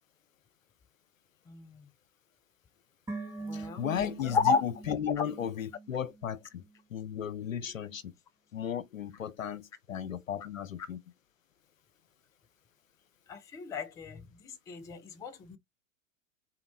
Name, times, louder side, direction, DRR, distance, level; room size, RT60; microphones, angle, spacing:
voice 1, 1.5-1.9 3.5-3.8 4.3-4.6 13.3-14.2 14.7-15.6, left 4 dB, 10° left, 0.4 m, -31 dB
sound 1, 3.1-6.4 6.6-6.7, right 3 dB, 5° right, 1.5 m, -43 dB
voice 2, 3.5-6.6 6.9-8.0 8.5-11.0, left 9 dB, 80° left, 0.7 m, -35 dB
4.1 x 2.9 x 4.3 m
figure-of-eight pair, 95°, 39 cm